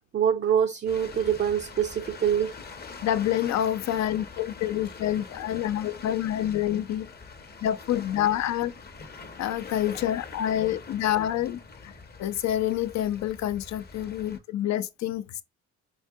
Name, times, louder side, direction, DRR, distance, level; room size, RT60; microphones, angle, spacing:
voice 1, 0.1-2.5, right 8 dB, 35° right, 0.5 m, -25 dB
sound 1, 0.9-14.4, left 4 dB, 35° left, 0.8 m, -44 dB
voice 2, 3.0-7.1 7.6-8.7 9.4-11.9 12.2-15.4, left 11 dB, 65° left, 0.5 m, -27 dB
4.7 x 2.2 x 2.6 m
cardioid pair, 90°, 30 cm